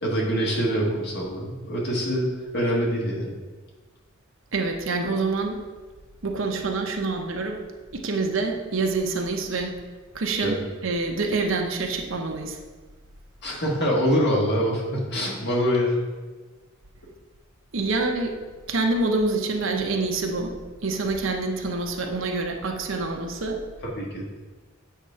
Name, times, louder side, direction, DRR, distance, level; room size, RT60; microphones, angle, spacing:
voice 1, 0.0-3.3 10.4-10.6 13.4-16.0 23.9-24.4, equal, 55° left, -3 dB, 1.7 m, -25 dB
voice 2, 4.5-5.6 6.2-7.6 7.9-9.8 10.1-12.6 17.7-18.4 18.7-20.5 20.8-23.6, right 3 dB, 65° right, 3 dB, 0.9 m, -26 dB
7.9 x 3.7 x 5.6 m, 1.3 s
head